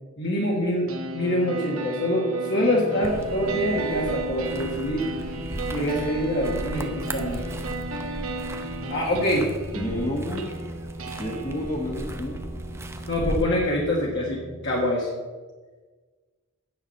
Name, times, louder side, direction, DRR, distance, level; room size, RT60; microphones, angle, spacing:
voice 1, 0.2-5.1 5.7-7.4 8.9-9.5 13.1-15.1, left 1 dB, 60° left, -4 dB, 1.7 m, -25 dB
sound 1, 0.9-14.9, right 2 dB, 85° right, 1.5 m, -34 dB
sound 2, 3.0-13.4, right 1 dB, 15° right, 0.7 m, -37 dB
voice 2, 9.7-10.4 11.2-12.4, left 1 dB, 35° left, -2 dB, 1.4 m, -30 dB
9.6 x 6.0 x 7.0 m, 1.4 s
head